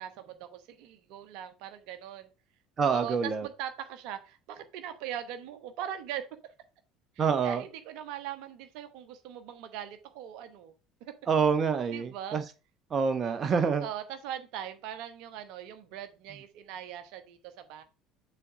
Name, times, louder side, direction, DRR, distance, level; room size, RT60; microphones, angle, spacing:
voice 1, 0.0-2.3 2.9-6.3 7.2-10.7 11.0-11.1 11.9-12.4 13.8-17.8, right 10 dB, 65° right, 0.9 m, -40 dB
voice 2, 2.8-3.5 7.2-7.6 11.3-12.4 12.9-13.9, right 6 dB, 35° right, 0.9 m, -26 dB
6.8 x 4.2 x 4.8 m
hypercardioid pair, 65°, 0 cm